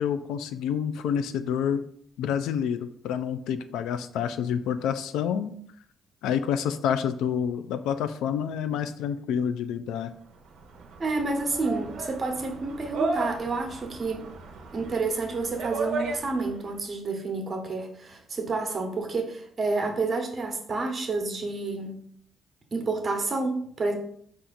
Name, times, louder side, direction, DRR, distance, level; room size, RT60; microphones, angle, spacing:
voice 1, 0.0-1.8 2.2-2.8 3.0-5.5 6.2-10.1, left 8 dB, 90° left, 11 dB, 0.3 m, -28 dB
sound 1, 10.3-16.7, right 3 dB, 70° right, 0.6 m, -35 dB
voice 2, 11.0-14.3 14.7-22.0 22.7-24.0, right 3 dB, 35° right, 4 dB, 0.9 m, -29 dB
4.3 x 2.5 x 3.9 m, 0.64 s
cardioid pair, 90°, 0 cm